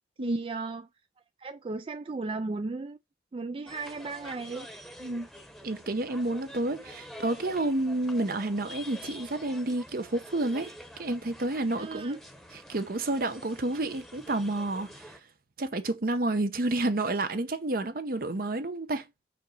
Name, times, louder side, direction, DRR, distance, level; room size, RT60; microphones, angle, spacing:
voice 1, 0.2-0.9 1.4-3.0 3.3-4.7 11.8-12.2, right 3 dB, 30° right, 0.3 m, -35 dB
sound 1, 3.7-15.2, left 1 dB, ahead, 1.0 m, -47 dB
voice 2, 5.6-10.7 11.0-12.2 12.5-15.2 15.6-19.0, right 2 dB, 55° right, 0.8 m, -30 dB
5.2 x 5.1 x 4.1 m
head